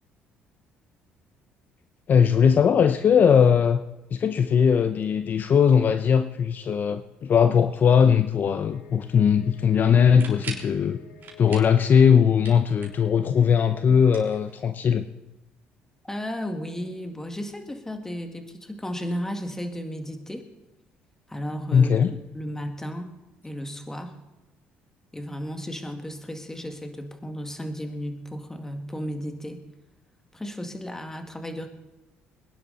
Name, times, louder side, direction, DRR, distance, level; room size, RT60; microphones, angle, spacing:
voice 1, 2.1-3.8 4.1-11.0 11.4-15.0 21.7-22.1, left 7 dB, 45° left, 10 dB, 0.7 m, -19 dB
sound 1, 8.6-14.0, left 5 dB, 85° left, 1.7 m, -50 dB
sound 2, 10.0-10.7 11.2-11.8 12.1-13.1 14.0-14.9, right 5 dB, 50° right, 3.7 m, -41 dB
voice 2, 16.0-20.5 21.3-23.1 23.4-24.2 25.1-29.6 30.3-31.7, equal, 10° left, 5 dB, 2.1 m, -34 dB
22.5 x 10.5 x 4.2 m, 1.0 s
supercardioid pair, 85°, 4 cm